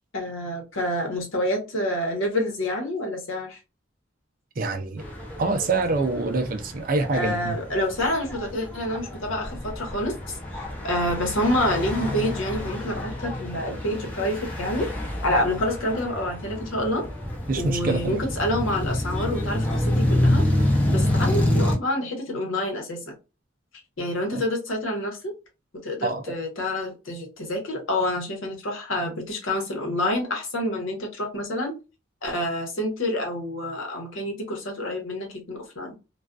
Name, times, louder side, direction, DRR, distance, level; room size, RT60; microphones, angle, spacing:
voice 1, 0.1-3.6 7.1-14.9 15.2-17.1 17.5-20.4 20.9-23.1 24.0-25.3 25.8-31.7 32.2-35.9, left 1 dB, 75° left, 1.0 m, -28 dB
voice 2, 4.6-5.0 5.4-7.5 17.5-18.2 24.3-24.4 26.0-26.3, right 3 dB, 40° right, 0.4 m, -25 dB
sound 1, 5.0-21.8, left 1 dB, 10° left, 0.6 m, -27 dB
2.5 x 2.3 x 2.2 m
head